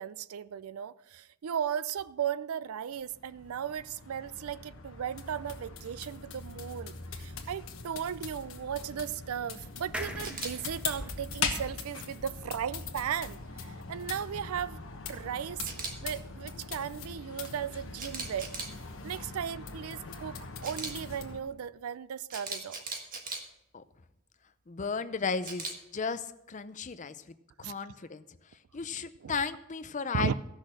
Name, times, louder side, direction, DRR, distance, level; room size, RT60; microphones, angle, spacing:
voice 1, 0.0-14.8 15.1-15.7 16.0-18.6 19.0-20.4 20.6-22.8 27.6-27.7 29.2-29.4 30.1-30.3, right 8 dB, 80° right, 0.4 m, -36 dB
sound 1, 2.9-21.4, left 5 dB, 65° left, 1.3 m, -41 dB
sound 2, 9.9-13.4 13.8-13.9 14.1-14.2, equal, 5° right, 0.7 m, -44 dB
Camera, 10.2-10.5 15.6-15.9 18.0-18.7 20.6-20.9 22.3-23.4 25.4-25.7, right 4 dB, 40° right, 1.5 m, -37 dB
voice 2, 24.7-25.7 25.9-27.2 27.6-28.2 28.7-30.3, left 5 dB, 35° left, 0.5 m, -34 dB
14.5 x 6.4 x 6.3 m
head